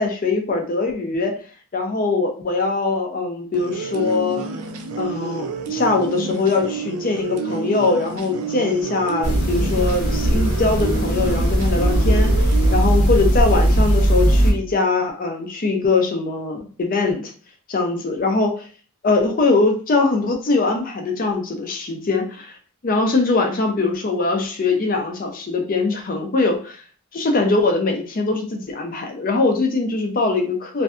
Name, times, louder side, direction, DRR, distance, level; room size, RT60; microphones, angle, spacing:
voice 1, 0.0-1.3 1.7-4.4 5.0-17.3 17.7-18.5 19.0-22.5 22.8-26.8 27.1-30.8, left 3 dB, 40° left, 3 dB, 0.4 m, -22 dB
sound 1, 3.5-12.8, right 5 dB, 75° right, 0.3 m, -29 dB
sound 2, 9.2-14.5, right 1 dB, 70° left, 0.7 m, -18 dB
2.6 x 2.2 x 2.3 m, 0.39 s
head